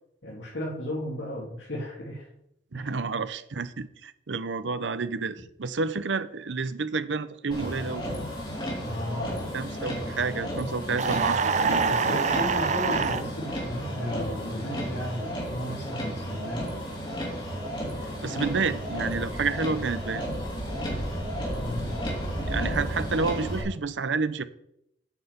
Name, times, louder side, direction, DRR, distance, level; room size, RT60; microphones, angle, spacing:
voice 1, 0.2-2.3 2.7-2.9 8.8-9.4 11.8-16.6 21.6-21.9, equal, 85° left, 2.9 m, -34 dB
voice 2, 2.7-8.0 9.5-12.1 18.2-20.3 22.5-24.4, right 4 dB, 90° right, 0.7 m, -30 dB
Motor vehicle (road), 7.5-23.6, equal, 25° left, 3.4 m, -33 dB
sound 1, 11.0-13.2, right 5 dB, 40° right, 0.5 m, -25 dB
9.3 x 5.8 x 8.0 m
head